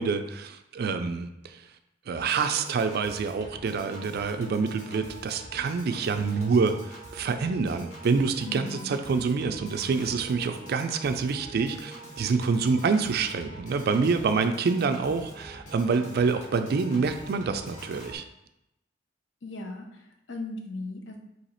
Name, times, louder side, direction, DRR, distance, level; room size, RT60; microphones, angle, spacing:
voice 1, 0.0-1.7 2.1-18.2, right 4 dB, 55° right, 8 dB, 0.4 m, -27 dB
Piano / Organ, 2.2-18.2, right 1 dB, 35° left, 0.9 m, -45 dB
voice 2, 8.5-9.0 19.4-21.2, left 2 dB, 65° left, 3 dB, 0.7 m, -37 dB
3.9 x 2.8 x 4.2 m, 0.84 s
head